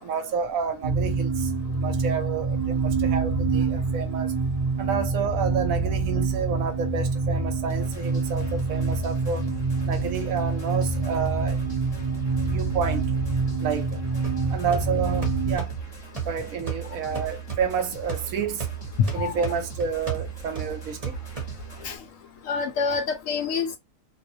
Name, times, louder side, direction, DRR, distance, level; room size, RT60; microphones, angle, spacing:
voice 1, 0.0-4.3 4.8-9.4 9.8-11.6 12.5-13.0 13.6-14.0 14.5-15.8 16.2-18.7 19.1-21.2, right 6 dB, 70° right, 1.0 m, -30 dB
sound 1, 0.8-15.6, right 4 dB, 55° right, 0.4 m, -26 dB
sound 2, 7.7-21.9, equal, 25° left, 0.7 m, -43 dB
sound 3, 14.2-22.0, right 8 dB, 30° right, 0.8 m, -35 dB
voice 2, 22.5-23.8, left 5 dB, 70° left, 0.8 m, -27 dB
2.7 x 2.0 x 2.6 m
omnidirectional pair, 1.6 m